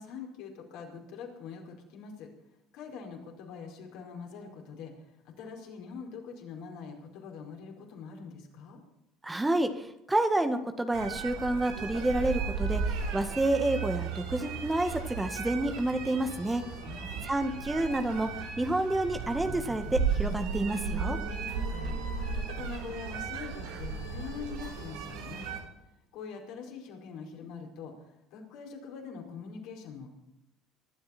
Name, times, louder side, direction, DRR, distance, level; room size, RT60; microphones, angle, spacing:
voice 1, 0.0-2.3 2.7-8.8 16.8-17.3 21.4-25.5 26.1-30.1, left 5 dB, 65° left, 1 dB, 5.0 m, -44 dB
voice 2, 9.2-12.8 13.1-16.6 17.2-18.3 18.6-21.2, right 1 dB, 15° right, 7 dB, 1.8 m, -29 dB
sound 1, 10.9-25.6, right 5 dB, 70° right, 3.7 m, -35 dB
24.0 x 12.5 x 4.4 m, 0.85 s
hypercardioid pair, 65°, 0 cm